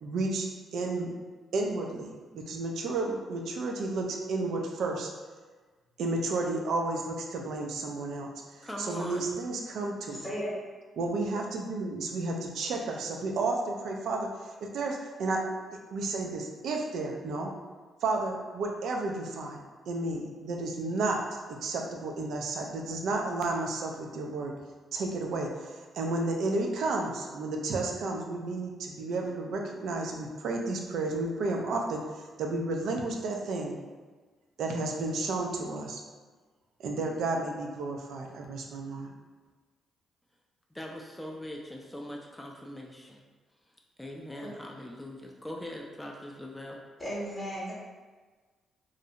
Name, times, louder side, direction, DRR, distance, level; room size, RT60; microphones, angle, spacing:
voice 1, 0.0-1.1 1.5-5.1 6.0-8.3 8.6-10.2 11.0-15.4 15.9-17.5 18.0-21.2 21.5-24.5 24.9-33.8 34.6-36.0 36.8-39.1, right 2 dB, 75° right, 2 dB, 0.3 m, -32 dB
voice 2, 8.6-9.2 40.7-43.2 44.0-46.8, left 1 dB, 5° left, -1 dB, 0.3 m, -41 dB
voice 3, 10.1-10.5 44.4-44.5 47.0-47.7, equal, 25° left, -7 dB, 0.8 m, -35 dB
2.5 x 2.0 x 2.7 m, 1.4 s
supercardioid pair, 60°, 0 cm